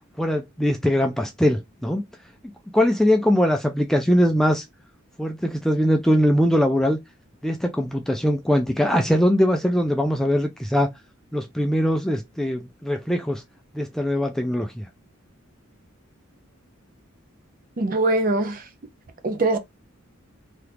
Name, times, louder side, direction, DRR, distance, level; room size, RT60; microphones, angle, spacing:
voice 1, 0.2-2.0 2.7-4.6 5.2-7.0 7.4-10.9 11.3-13.4 13.7-14.9, equal, ahead, 0.3 m, -21 dB
voice 2, 17.8-18.6 19.2-19.6, right 2 dB, 40° right, 0.6 m, -22 dB
2.9 x 2.4 x 3.3 m
head